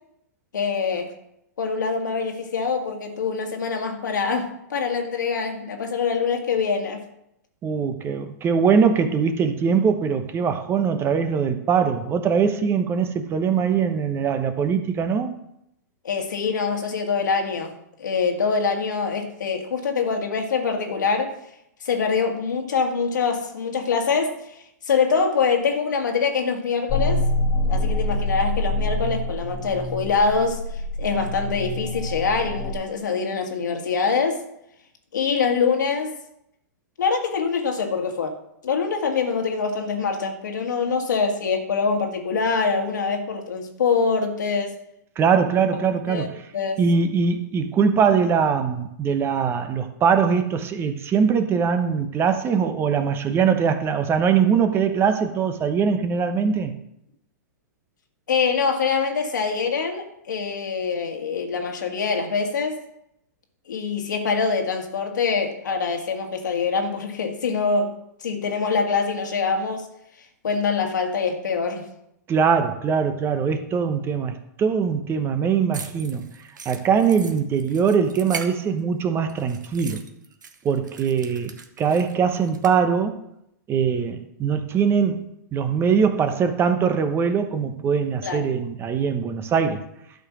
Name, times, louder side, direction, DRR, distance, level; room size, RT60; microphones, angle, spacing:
voice 1, 0.5-1.1 1.6-7.0 16.0-17.7 18.0-21.3 21.8-24.4 24.9-27.3 27.7-30.6 31.0-34.4 35.1-36.1 37.0-38.4 38.6-44.8 46.1-46.3 46.5-46.8 58.3-62.8 63.7-67.9 68.2-69.9 70.4-71.9 88.2-88.5, left 5 dB, 80° left, 4 dB, 1.9 m, -24 dB
voice 2, 7.6-15.3 45.2-46.3 46.8-56.7 72.3-76.3 76.6-80.0 80.6-81.5 81.8-83.2 83.7-89.8, right 6 dB, 25° right, 8 dB, 1.0 m, -22 dB
sound 1, 26.9-32.7, left 1 dB, 15° left, 1.2 m, -26 dB
sound 2, 75.7-79.0 79.3-82.7, right 6 dB, 90° right, 1.1 m, -39 dB
12.0 x 5.0 x 6.2 m, 0.79 s
hypercardioid pair, 120°, 10 cm